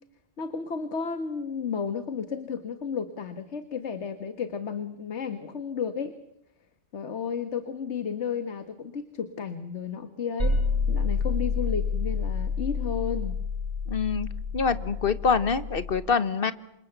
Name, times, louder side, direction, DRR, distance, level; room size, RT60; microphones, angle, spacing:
voice 1, 0.4-6.1 6.9-10.6 10.9-13.4, left 6 dB, 65° left, 10 dB, 1.7 m, -33 dB
sound 1, 10.4-15.9, left 4 dB, 60° right, 6.9 m, -28 dB
voice 2, 13.9-14.3 14.5-16.5, left 5 dB, 50° left, 13 dB, 1.5 m, -25 dB
28.5 x 25.5 x 8.0 m, 0.79 s
omnidirectional pair, 1.2 m